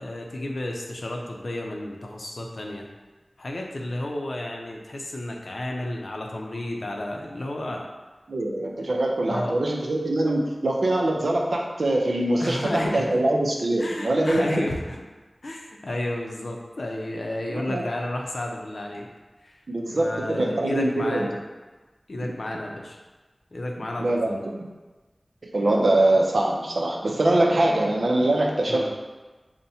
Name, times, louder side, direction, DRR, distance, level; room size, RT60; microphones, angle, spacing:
voice 1, 0.0-2.9 3.4-7.9 8.8-8.9 9.3-9.6 12.4-13.2 13.8-15.0 15.4-19.1 19.4-19.6 19.9-21.4 22.1-23.0 23.5-24.4 28.7-28.9, left 1 dB, 75° left, 0 dB, 0.5 m, -32 dB
voice 2, 8.3-14.6 17.5-17.8 19.7-21.3 24.0-24.7 25.5-28.9, right 1 dB, 90° right, 0 dB, 0.5 m, -23 dB
5.5 x 2.2 x 2.7 m, 1.2 s
wide cardioid pair, 55°, 0 cm